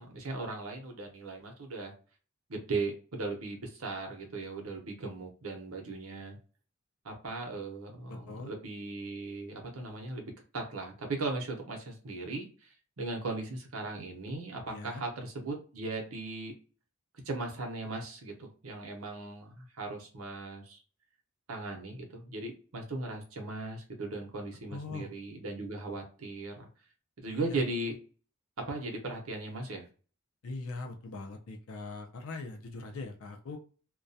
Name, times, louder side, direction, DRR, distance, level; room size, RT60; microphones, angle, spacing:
voice 1, 0.0-1.9 2.5-6.4 7.0-16.5 17.2-20.8 21.5-26.7 27.2-28.0 28.7-29.9, right 3 dB, 70° right, 2 dB, 0.7 m, -38 dB
voice 2, 8.1-8.5 14.7-15.0 24.7-25.1 27.3-27.6 30.4-33.6, left 3 dB, 70° left, 3 dB, 0.5 m, -41 dB
2.2 x 2.2 x 2.6 m, 0.38 s
head